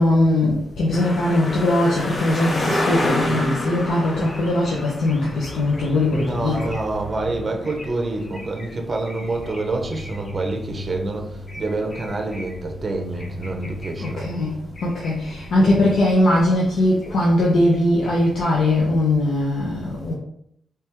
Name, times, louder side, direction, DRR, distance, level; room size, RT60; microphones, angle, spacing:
voice 1, 0.0-6.7 14.0-20.1, left 1 dB, 85° left, -5 dB, 0.7 m, -20 dB
sound 1, 0.9-8.8 9.1-10.9 11.2-14.1 14.4-14.5 14.8-15.7 16.0-16.5 16.9-18.5, left 1 dB, 30° left, 0.8 m, -30 dB
sound 2, 5.3-16.0, equal, 45° left, 1.4 m, -38 dB
voice 2, 6.1-14.3, right 2 dB, 30° right, 2 dB, 0.6 m, -27 dB
3.4 x 3.4 x 2.9 m, 0.71 s
wide cardioid pair, 150°, 0 cm